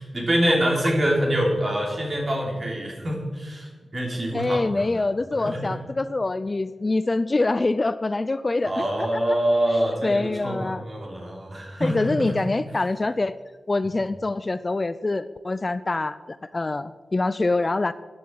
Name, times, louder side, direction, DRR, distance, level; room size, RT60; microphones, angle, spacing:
voice 1, 0.0-4.9 5.4-5.8 8.6-12.4, right 1 dB, 40° right, -1 dB, 3.4 m, -25 dB
voice 2, 4.3-8.9 9.1-9.2 10.0-10.8 11.8-13.3 13.7-17.9, left 2 dB, 30° left, 14 dB, 0.4 m, -25 dB
14.5 x 10.0 x 4.7 m, 1.4 s
wide cardioid pair, 110°, 0 cm